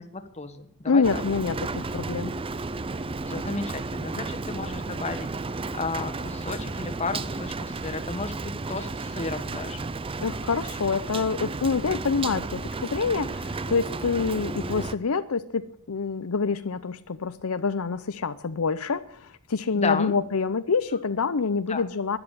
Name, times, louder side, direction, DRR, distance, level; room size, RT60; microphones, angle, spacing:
voice 1, 0.0-1.0 3.3-9.8 19.7-20.1 21.7-21.8, left 4 dB, 30° left, 7 dB, 1.3 m, -33 dB
voice 2, 0.9-2.4 10.2-22.2, left 5 dB, 70° left, 11 dB, 0.7 m, -26 dB
Rain, 1.0-15.0, right 3 dB, 25° right, 0.5 m, -33 dB
13.0 x 11.0 x 8.4 m, 0.63 s
head